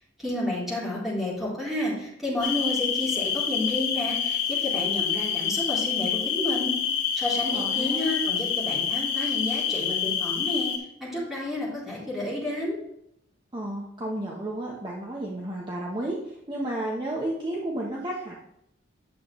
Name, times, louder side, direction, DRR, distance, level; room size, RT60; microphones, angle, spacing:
voice 1, 0.2-6.8 7.2-10.7 11.0-12.8, left 1 dB, ahead, -7 dB, 3.5 m, -30 dB
sound 1, 2.4-10.8, left 7 dB, 55° left, 2.2 m, -27 dB
voice 2, 7.5-8.2 13.5-16.2 16.5-18.4, right 1 dB, 25° right, -3 dB, 1.1 m, -32 dB
9.7 x 7.3 x 3.2 m, 0.77 s
head